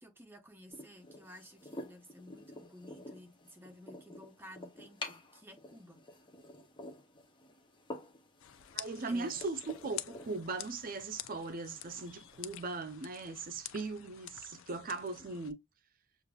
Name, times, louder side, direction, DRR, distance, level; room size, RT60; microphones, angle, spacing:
voice 1, 0.0-6.0 9.1-9.4, equal, 10° right, 0.9 m, -54 dB
sound 1, 0.7-12.5, left 2 dB, 25° left, 0.7 m, -50 dB
sound 2, 8.4-15.5, left 13 dB, 70° left, 0.4 m, -48 dB
voice 2, 8.7-15.6, right 3 dB, 45° right, 0.6 m, -39 dB
6.5 x 2.5 x 2.3 m
head